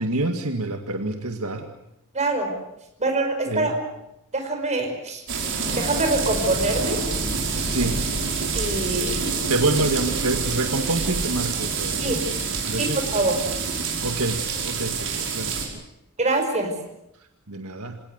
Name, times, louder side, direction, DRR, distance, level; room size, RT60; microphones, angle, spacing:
voice 1, 0.0-1.7 3.5-3.7 7.6-8.0 9.5-12.2 12.6-13.0 14.0-15.8 17.5-18.0, right 2 dB, 80° right, 5 dB, 2.0 m, -27 dB
voice 2, 2.1-2.5 3.0-3.8 4.3-5.2 5.8-7.0 7.5-7.7 8.5-9.2 12.0-12.2 12.8-13.4 16.2-16.7, right 2 dB, 30° right, 4 dB, 5.3 m, -24 dB
sound 1, 5.3-15.7, right 4 dB, 60° right, 5.3 m, -27 dB
26.5 x 18.5 x 8.1 m, 0.83 s
head